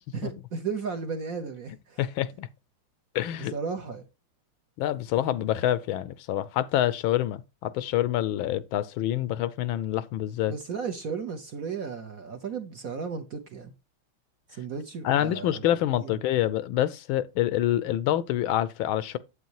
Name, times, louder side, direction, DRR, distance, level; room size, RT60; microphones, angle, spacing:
voice 1, 0.1-2.0 3.4-4.0 10.5-13.7 14.5-15.6 16.0-16.2, right 5 dB, 55° right, 1.0 m, -34 dB
voice 2, 2.0-2.5 3.1-3.5 4.8-10.5 15.0-19.2, left 12 dB, 75° left, 1.3 m, -26 dB
8.2 x 8.1 x 3.0 m
omnidirectional pair, 2.3 m